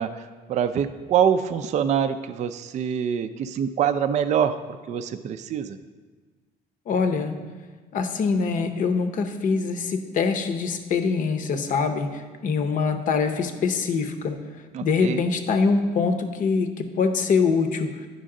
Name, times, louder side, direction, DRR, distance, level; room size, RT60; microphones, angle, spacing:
voice 1, 0.0-4.5 4.9-5.8 14.7-15.2, right 8 dB, 45° right, 9 dB, 0.4 m, -25 dB
voice 2, 6.9-7.3 7.9-14.4 14.8-17.9, left 5 dB, 50° left, 8 dB, 0.7 m, -24 dB
9.9 x 5.2 x 3.7 m, 1.4 s
cardioid pair, 110°, 17 cm